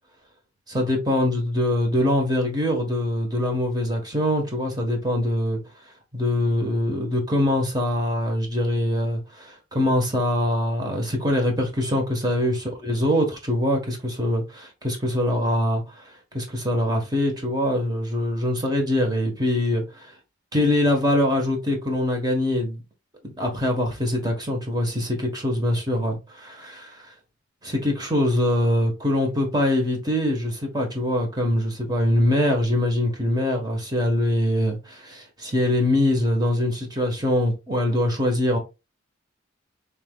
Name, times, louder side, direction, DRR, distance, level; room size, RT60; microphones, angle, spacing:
voice 1, 0.7-5.6 6.1-20.1 20.5-22.8 23.2-27.1 27.6-38.6, left 1 dB, 20° right, 1.4 m, -23 dB
5.8 x 3.4 x 2.4 m
head